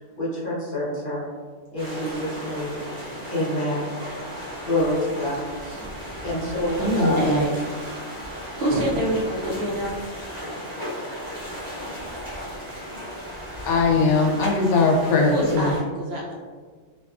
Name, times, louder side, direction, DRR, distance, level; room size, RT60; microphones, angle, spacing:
voice 1, 0.2-1.2 1.7-2.8 3.3-3.9 4.6-5.8 6.2-7.2, left 1 dB, 50° left, -8 dB, 1.0 m, -27 dB
sound 1, 1.8-15.8, equal, 20° right, 1.1 m, -35 dB
voice 2, 6.8-7.5 8.6-10.1 15.3-16.4, equal, 65° right, -3 dB, 0.8 m, -24 dB
voice 3, 13.6-15.7, left 3 dB, 90° left, -1 dB, 0.9 m, -20 dB
2.6 x 2.3 x 2.3 m, 1.5 s
omnidirectional pair, 1.2 m